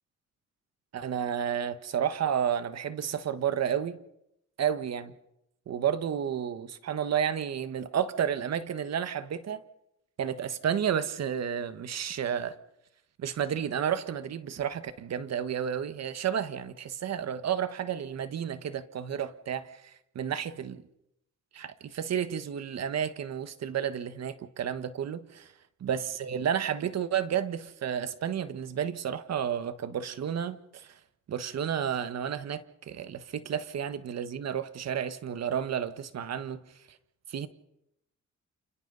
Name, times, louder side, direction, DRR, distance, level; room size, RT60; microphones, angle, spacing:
voice 1, 0.9-4.0 4.6-5.1 5.7-9.6 10.2-12.5 13.2-20.8 21.5-25.5 25.8-31.0 31.3-36.6 37.3-37.5, right 8 dB, 60° right, 11 dB, 1.5 m, -31 dB
29.0 x 27.0 x 4.0 m, 0.82 s
cardioid pair, 90°, 30 cm